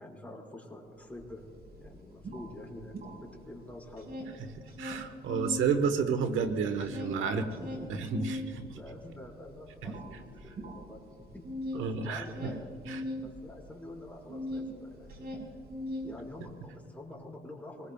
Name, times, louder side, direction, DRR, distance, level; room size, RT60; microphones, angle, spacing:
voice 1, 0.0-1.4 1.7-4.1 7.3-11.0 11.3-12.8 13.2-15.3 16.0-17.9, left 1 dB, 5° left, -2 dB, 4.8 m, -47 dB
sound 1, 1.2-1.3 1.6-3.6 3.8-5.7 6.1-14.7 15.0-16.5, left 1 dB, 50° right, 5.2 m, -40 dB
voice 2, 4.8-7.4 7.9-8.4 11.7-12.5 12.9-13.0, right 6 dB, 80° right, 8 dB, 1.2 m, -30 dB
26.0 x 20.5 x 2.4 m, 2.2 s
cardioid pair, 90°, 20 cm